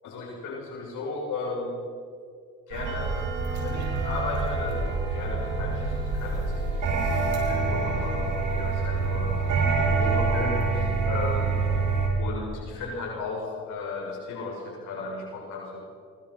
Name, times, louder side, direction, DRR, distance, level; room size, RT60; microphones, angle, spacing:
voice 1, 0.0-1.8 2.7-3.1 3.6-11.6 12.2-15.8, left 3 dB, 85° left, -1 dB, 6.9 m, -35 dB
sound 1, 2.7-12.1, right 4 dB, 85° right, 6.0 m, -26 dB
25.0 x 24.0 x 5.8 m, 2.3 s
cardioid pair, 90°, 30 cm